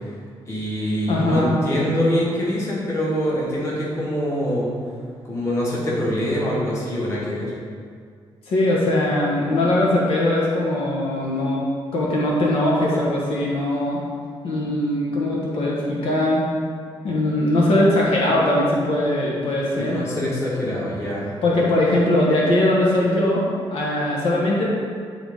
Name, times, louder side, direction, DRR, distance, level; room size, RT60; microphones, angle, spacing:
voice 1, 0.5-4.8 5.3-7.5 19.7-21.3, equal, 30° left, -6 dB, 1.6 m, -24 dB
voice 2, 1.1-1.5 8.5-11.6 11.9-14.0 14.4-16.4 17.0-20.0 21.4-23.4 23.7-24.6, left 1 dB, 75° left, -4 dB, 1.2 m, -20 dB
9.5 x 3.9 x 3.6 m, 2.1 s
wide cardioid pair, 170°, 10 cm